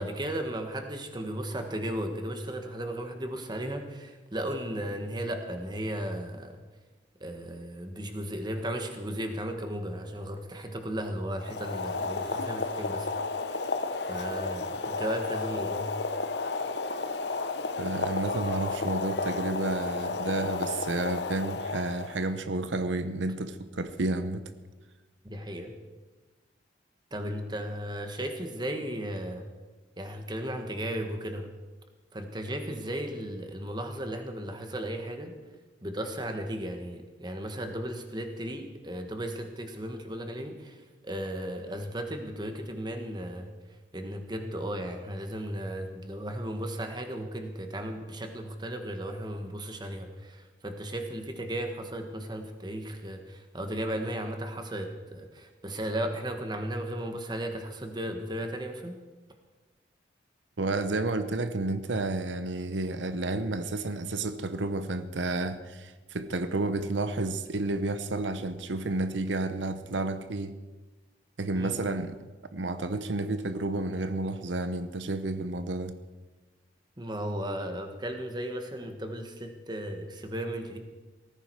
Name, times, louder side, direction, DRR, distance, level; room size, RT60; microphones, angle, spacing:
voice 1, 0.0-6.6 7.2-13.1 14.1-15.9 25.2-25.7 27.1-29.5 30.0-31.5 32.1-35.4 35.8-43.5 43.9-59.0 71.5-71.8 77.0-80.8, right 1 dB, 25° right, 1.5 m, -35 dB
Boiling, 11.4-22.4, left 3 dB, 70° left, 0.8 m, -32 dB
voice 2, 17.8-24.4 60.6-70.6 71.4-72.2 72.5-76.0, right 2 dB, 90° right, 0.8 m, -31 dB
18.0 x 14.5 x 4.7 m
head